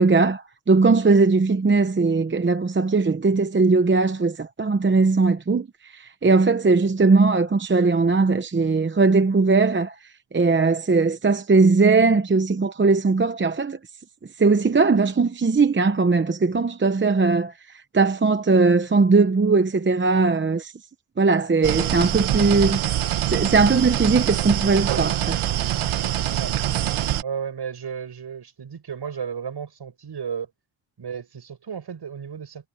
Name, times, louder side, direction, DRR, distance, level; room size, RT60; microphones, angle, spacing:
voice 1, 0.0-9.9 10.3-13.8 14.4-17.5 17.9-20.7 21.2-22.8 23.3-25.4, right 4 dB, 25° right, 0.8 m, -19 dB
sound 1, 21.6-27.2, right 12 dB, 85° right, 1.0 m, -24 dB
voice 2, 27.2-30.5 31.0-32.7, right 7 dB, 55° right, 7.2 m, -33 dB
wide cardioid pair, 140°, 48 cm